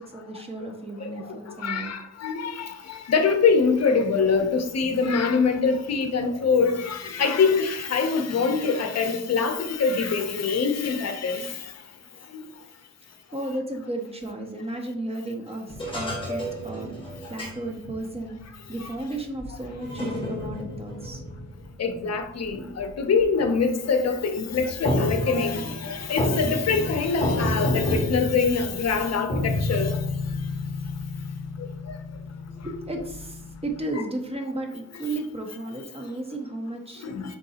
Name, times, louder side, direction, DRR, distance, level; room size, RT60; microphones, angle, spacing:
voice 1, 0.0-1.9 13.3-17.0 17.3-18.4 18.7-21.2 26.0-26.1 32.5-37.0, right 2 dB, 20° right, 0.7 m, -34 dB
voice 2, 1.6-11.5 18.8-18.9 21.8-30.0 31.6-32.0 37.0-37.2, left 5 dB, 60° left, 0.6 m, -24 dB
sound 1, 15.7-18.4 19.2-22.9 23.2-23.7 24.3-33.8, left 1 dB, 15° left, 1.3 m, -30 dB
4.7 x 3.7 x 2.8 m
wide cardioid pair, 150°, 30 cm